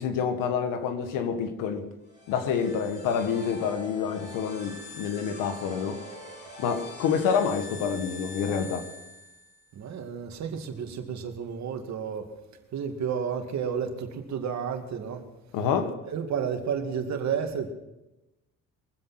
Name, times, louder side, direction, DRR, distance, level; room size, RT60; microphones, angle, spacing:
voice 1, 0.0-1.9 2.3-6.0 6.6-8.9 15.5-16.0, left 7 dB, 85° left, 1.8 m, -28 dB
sound 1, 2.0-9.7, left 2 dB, 35° left, 6.3 m, -44 dB
voice 2, 9.7-12.3 12.7-15.3 16.0-17.7, right 7 dB, 60° right, 2.3 m, -31 dB
23.0 x 7.9 x 5.9 m
cardioid pair, 90°, 32 cm